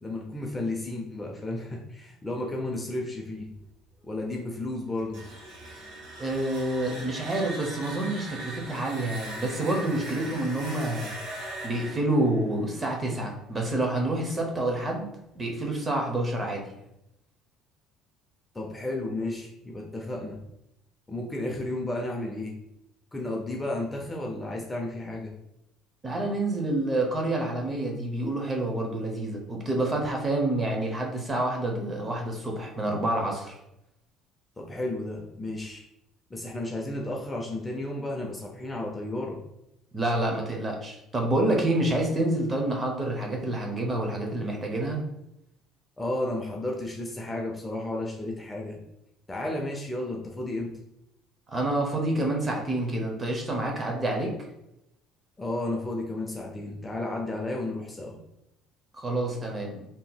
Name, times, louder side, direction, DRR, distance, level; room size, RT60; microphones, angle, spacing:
voice 1, 0.0-3.5 4.0-5.2 18.5-20.4 21.1-22.6 23.1-25.3 34.6-35.8 36.3-39.4 46.0-48.8 49.3-50.8 55.4-58.2, left 2 dB, 15° left, -1 dB, 0.4 m, -33 dB
sound 1, 5.0-13.8, right 1 dB, 85° right, 1.5 m, -40 dB
voice 2, 6.2-11.1 11.6-15.1 15.3-16.7 26.0-33.6 39.9-45.0 51.5-54.3 58.9-59.9, right 1 dB, 20° right, 1 dB, 0.7 m, -28 dB
3.6 x 2.8 x 2.2 m, 0.85 s
cardioid pair, 125°, 0 cm